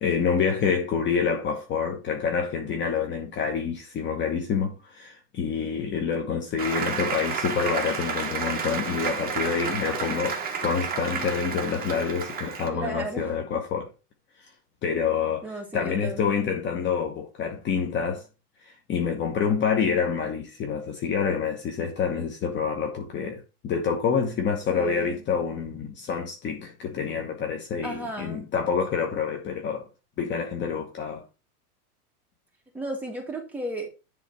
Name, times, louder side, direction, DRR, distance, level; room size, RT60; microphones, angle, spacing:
voice 1, 0.0-13.9 14.8-18.2 18.6-29.9 30.2-31.2, left 6 dB, 25° left, 1.2 m, -27 dB
Applause, 6.6-12.7, right 5 dB, 20° right, 1.6 m, -31 dB
voice 2, 12.7-13.3 15.4-16.2 24.7-25.2 27.8-28.5 32.7-33.9, right 1 dB, 5° right, 1.9 m, -34 dB
10.5 x 3.8 x 4.7 m
supercardioid pair, 140°, 46 cm